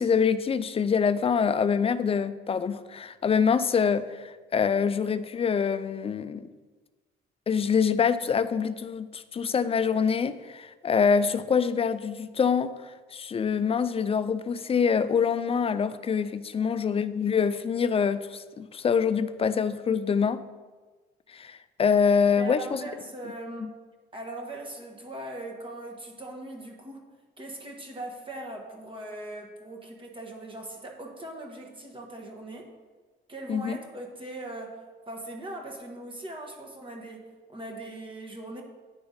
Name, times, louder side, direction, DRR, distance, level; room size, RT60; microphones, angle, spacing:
voice 1, 0.0-6.5 7.5-20.4 21.3-22.8 23.6-23.7 33.5-33.8, left 6 dB, 30° left, 13 dB, 0.4 m, -25 dB
voice 2, 22.4-23.7 24.1-27.0 27.4-32.7 33.3-38.6, right 1 dB, 25° right, 1 dB, 1.2 m, -40 dB
9.7 x 3.4 x 5.5 m, 1.3 s
cardioid pair, 90°, 20 cm